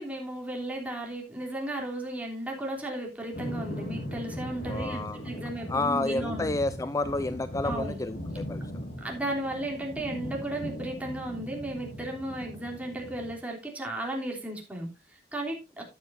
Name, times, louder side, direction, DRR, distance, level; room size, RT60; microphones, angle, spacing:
voice 1, 0.0-6.5 7.6-8.0 9.0-15.8, right 1 dB, 10° right, -1 dB, 3.1 m, -35 dB
sound 1, 3.3-13.3, equal, 55° left, 3.1 m, -38 dB
voice 2, 4.7-5.2 5.7-8.6, left 2 dB, 20° left, 12 dB, 0.4 m, -30 dB
13.0 x 9.3 x 2.6 m, 0.28 s
head